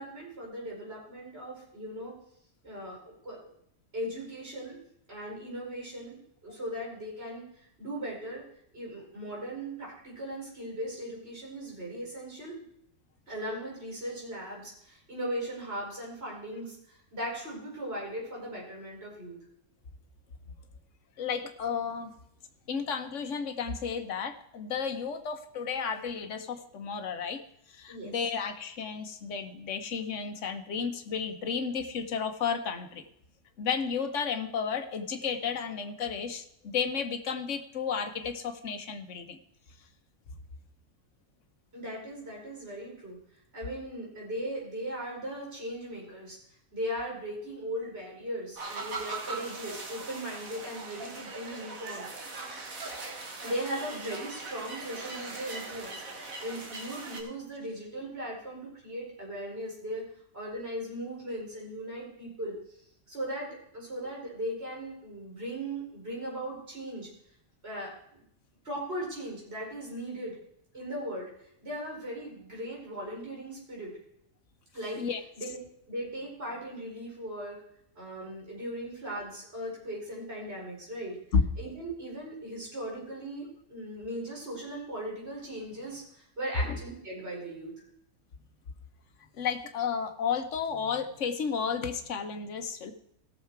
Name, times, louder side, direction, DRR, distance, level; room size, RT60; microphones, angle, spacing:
voice 1, 0.0-2.1 2.6-3.4 3.9-4.8 5.1-7.4 7.8-8.4 8.7-12.6 13.3-19.4 27.9-28.3 41.7-43.2 43.5-46.4 46.7-52.1 53.4-56.0 56.4-60.0 60.3-62.6 63.1-67.1 67.6-67.9 68.6-70.3 70.7-71.3 71.6-73.9 74.7-77.6 77.9-87.7, right 1 dB, 45° right, -3 dB, 5.1 m, -38 dB
voice 2, 21.2-22.1 22.7-27.4 27.7-33.0 33.6-39.4 74.9-75.2 81.3-81.4 86.6-86.8 89.3-92.9, left 6 dB, 60° left, 7 dB, 1.3 m, -32 dB
sound 1, 48.6-57.2, right 3 dB, 75° right, 2.3 m, -40 dB
17.0 x 6.7 x 4.6 m, 0.72 s
omnidirectional pair, 1.4 m